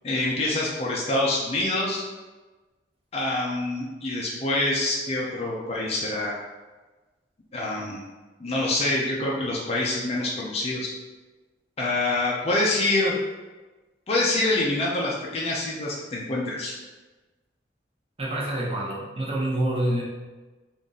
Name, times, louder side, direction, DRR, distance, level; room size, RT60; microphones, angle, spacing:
voice 1, 0.0-2.0 3.1-6.3 7.5-8.0 8.4-10.9 11.8-13.1 14.1-16.7, left 2 dB, 35° left, -4 dB, 0.6 m, -26 dB
voice 2, 18.2-20.0, right 1 dB, 35° right, -4 dB, 0.9 m, -27 dB
3.7 x 2.6 x 3.9 m, 1.2 s
head